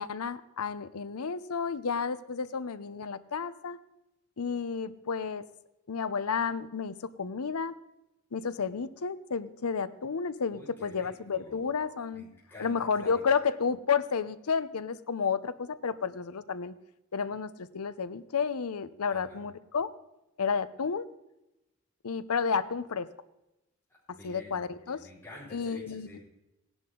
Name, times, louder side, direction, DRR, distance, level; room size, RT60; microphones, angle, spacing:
voice 1, 0.0-3.8 4.4-5.4 5.9-7.8 8.3-12.3 12.6-16.7 17.1-19.9 20.4-21.1 22.0-23.1 24.1-25.1 25.5-26.1, left 5 dB, 85° left, 15 dB, 0.7 m, -31 dB
voice 2, 10.5-11.7 12.1-13.2 19.1-19.4 23.9-26.2, left 1 dB, 10° left, -7 dB, 4.9 m, -50 dB
17.0 x 11.0 x 3.8 m, 0.92 s
head